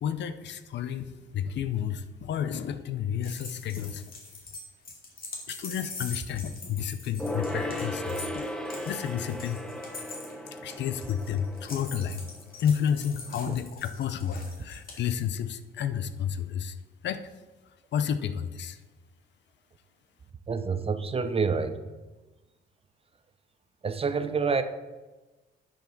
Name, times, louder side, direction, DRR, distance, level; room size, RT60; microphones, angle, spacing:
voice 1, 0.0-4.0 5.5-8.5 8.9-9.6 10.6-12.2 12.6-16.7 17.0-17.2 17.9-18.8, left 8 dB, 65° left, 12 dB, 0.6 m, -31 dB
sound 1, 3.2-15.0, left 3 dB, 45° left, 2.3 m, -43 dB
Gong, 7.2-13.1 13.4-13.5, left 1 dB, 5° left, 0.8 m, -36 dB
voice 2, 20.5-21.9 23.8-24.6, right 5 dB, 30° right, 11 dB, 0.6 m, -28 dB
10.5 x 5.1 x 3.9 m, 1.2 s
cardioid pair, 90°, 20 cm